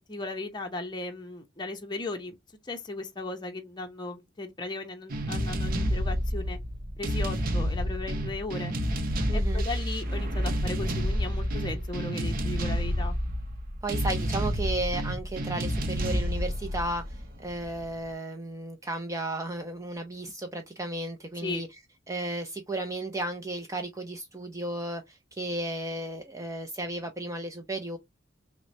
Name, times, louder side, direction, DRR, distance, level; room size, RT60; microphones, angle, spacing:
voice 1, 0.1-2.4 2.6-6.6 7.0-8.7 9.3-13.1 21.4-21.6, left 2 dB, 25° left, 0.6 m, -36 dB
sound 1, 5.1-17.8, equal, 50° right, 0.7 m, -29 dB
voice 2, 9.3-9.6 13.8-21.7 22.1-28.0, right 2 dB, 15° right, 0.5 m, -34 dB
6.1 x 2.1 x 2.6 m
head